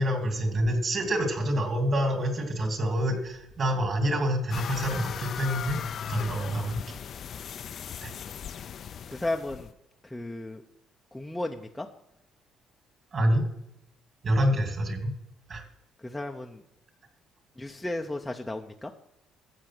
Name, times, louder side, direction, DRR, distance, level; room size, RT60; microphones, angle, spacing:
voice 1, 0.0-5.8 6.1-6.8 8.0-8.1 13.1-13.4 14.2-15.1 15.5-15.6, equal, 35° right, 4 dB, 2.7 m, -27 dB
sound 1, 4.5-9.7, left 8 dB, 45° left, 0.5 m, -36 dB
voice 2, 9.1-9.7 10.0-10.6 11.1-11.9 16.0-16.6 17.6-18.9, left 2 dB, 5° left, 2 dB, 0.7 m, -34 dB
13.5 x 8.2 x 6.1 m, 0.83 s
cardioid pair, 145°, 0 cm